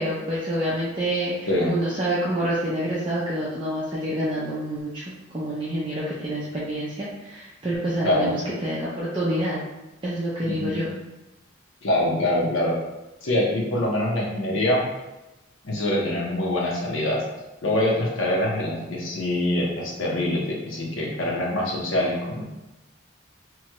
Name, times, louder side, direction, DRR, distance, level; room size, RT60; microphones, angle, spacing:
voice 1, 0.0-5.0 5.3-9.6 10.0-10.9, right 1 dB, 25° right, -8 dB, 0.5 m, -27 dB
voice 2, 8.0-8.3 10.5-10.8 11.8-12.8 13.2-14.9 15.6-17.2 17.6-22.4, left 1 dB, 80° left, -2 dB, 0.7 m, -24 dB
3.0 x 2.2 x 2.9 m, 1.0 s
head